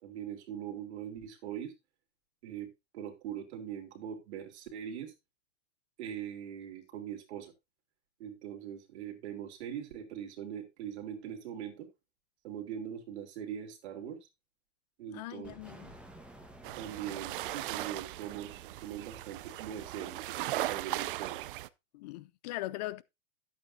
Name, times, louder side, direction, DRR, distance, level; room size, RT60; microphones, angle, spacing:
voice 1, 0.0-1.7 2.4-5.1 6.0-7.5 8.2-11.9 12.4-14.3 15.0-15.5 16.8-20.2 20.5-21.4, right 9 dB, 65° right, 3.2 m, -41 dB
voice 2, 15.1-15.9 21.9-23.0, left 16 dB, 35° left, 0.4 m, -40 dB
sound 1, 15.4-20.1, right 1 dB, 5° right, 1.2 m, -55 dB
sound 2, 16.6-21.7, right 16 dB, 45° right, 0.5 m, -38 dB
11.5 x 8.5 x 2.7 m
supercardioid pair, 150°, 36 cm